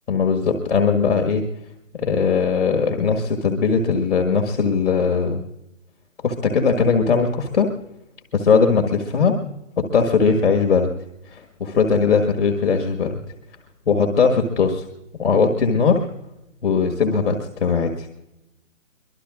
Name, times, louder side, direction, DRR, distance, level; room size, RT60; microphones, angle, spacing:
voice 1, 0.1-1.4 2.0-5.4 6.2-7.7 8.3-10.9 11.3-13.2 13.9-14.9 15.2-16.1 16.6-18.1, left 5 dB, 60° left, 4 dB, 1.8 m, -19 dB
23.5 x 21.5 x 2.5 m, 0.91 s
figure-of-eight pair, 150°, 39 cm